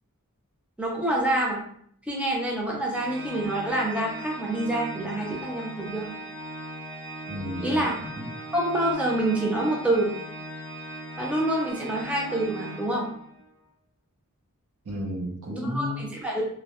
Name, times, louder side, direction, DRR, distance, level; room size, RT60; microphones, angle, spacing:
voice 1, 0.8-1.6 2.1-6.1 7.6-8.0 8.5-10.2 11.2-13.1 15.5-16.4, right 1 dB, 5° right, -3 dB, 0.5 m, -27 dB
Organ, 2.9-13.5, right 1 dB, 45° right, 0.7 m, -39 dB
voice 2, 7.3-8.3 14.8-16.1, equal, 85° right, 0 dB, 0.7 m, -33 dB
2.5 x 2.0 x 2.9 m, 0.64 s
head